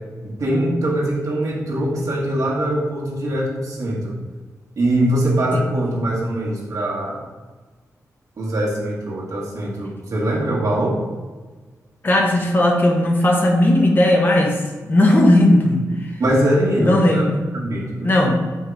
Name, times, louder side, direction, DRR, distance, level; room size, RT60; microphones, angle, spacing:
voice 1, 0.2-4.2 4.8-7.2 8.4-11.0 16.2-17.2 17.5-18.1, right 1 dB, 65° right, -4 dB, 1.7 m, -22 dB
voice 2, 12.0-14.6 14.8-15.8 16.8-17.4 18.0-18.4, left 1 dB, 35° left, 1 dB, 0.9 m, -16 dB
5.4 x 3.8 x 4.8 m, 1.3 s
wide cardioid pair, 105°, 6 cm